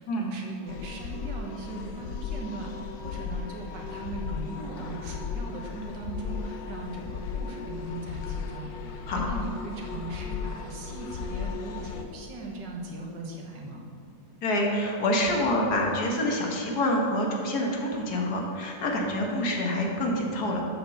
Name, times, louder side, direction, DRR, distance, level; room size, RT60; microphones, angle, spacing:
voice 1, 0.0-13.8, right 2 dB, 75° right, 0 dB, 1.8 m, -38 dB
sound 1, 0.7-12.0, left 6 dB, 85° left, 1.5 m, -36 dB
voice 2, 14.4-20.6, left 1 dB, 60° left, 0 dB, 1.7 m, -27 dB
8.4 x 5.2 x 6.5 m, 2.5 s
omnidirectional pair, 1.9 m